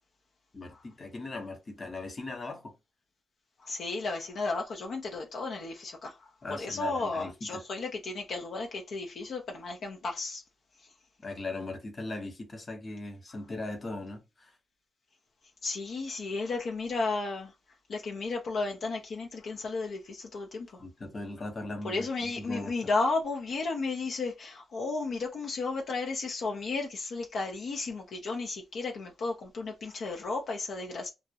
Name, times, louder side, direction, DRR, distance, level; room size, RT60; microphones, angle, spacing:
voice 1, 0.5-2.7 6.4-7.6 11.2-14.5 20.8-22.7, left 2 dB, 30° left, 0.7 m, -39 dB
voice 2, 3.6-10.4 15.6-17.5 17.9-20.8 21.8-31.1, left 3 dB, 65° left, 0.5 m, -33 dB
2.3 x 2.0 x 2.7 m
cardioid pair, 110°, 0 cm